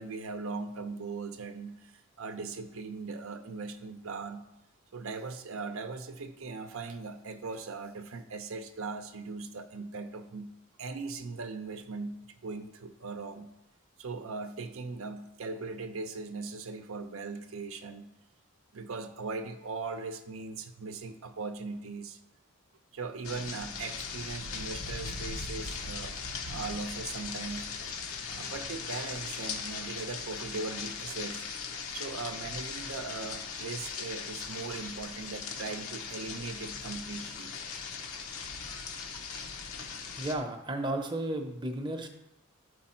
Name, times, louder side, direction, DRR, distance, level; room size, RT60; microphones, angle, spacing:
voice 1, 0.0-1.9 2.2-4.5 4.9-10.5 10.8-13.5 14.0-18.1 18.7-22.2 22.9-26.2 26.5-27.7 28.3-31.5 31.9-37.5 38.6-38.9, right 4 dB, 80° right, 8 dB, 0.7 m, -39 dB
sound 1, 23.2-40.3, left 5 dB, 90° left, 1.0 m, -39 dB
voice 2, 40.2-42.1, right 1 dB, 20° right, 5 dB, 0.7 m, -33 dB
11.5 x 4.7 x 4.4 m, 0.93 s
head